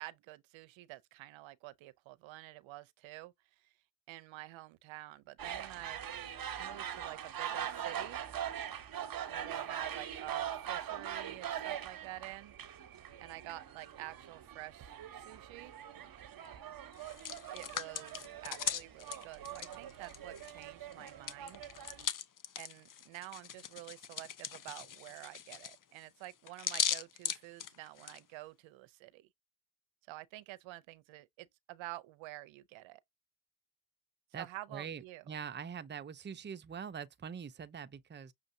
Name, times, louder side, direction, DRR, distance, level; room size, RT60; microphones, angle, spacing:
voice 1, 0.0-3.7 4.1-6.0 6.6-8.2 9.2-12.5 13.2-15.7 17.5-21.6 22.6-29.3 30.1-33.0 34.4-35.2, right 18 dB, 75° right, 0.6 m, -49 dB
sound 1, 5.4-22.0, right 9 dB, 45° right, 1.0 m, -42 dB
Hands, 16.9-20.6 20.9-28.2, left 9 dB, 45° left, 0.8 m, -39 dB
voice 2, 34.7-38.3, right 7 dB, 25° right, 0.6 m, -43 dB
6.3 x 2.5 x 2.6 m
supercardioid pair, 55°, 47 cm